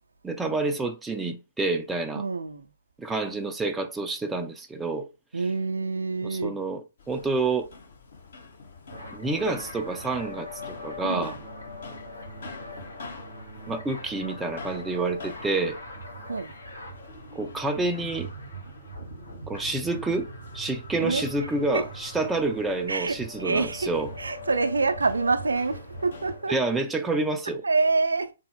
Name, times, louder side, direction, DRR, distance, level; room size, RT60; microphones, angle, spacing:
voice 1, 0.2-2.2 3.0-5.1 6.2-6.8 7.1-7.7 9.1-11.3 13.7-15.8 17.3-18.3 19.5-24.1 26.5-27.6, right 3 dB, 10° right, 0.3 m, -28 dB
voice 2, 2.2-2.7 5.3-6.6 11.0-11.4 16.3-16.5 21.0-21.5 21.7-21.9 22.9-23.9 24.2-26.5 27.6-28.3, right 3 dB, 70° right, 0.4 m, -26 dB
sound 1, 7.0-26.4, left 4 dB, 55° left, 0.9 m, -47 dB
sound 2, 8.9-26.5, equal, 80° left, 2.0 m, -41 dB
3.4 x 2.0 x 3.5 m
figure-of-eight pair, 125°, 0 cm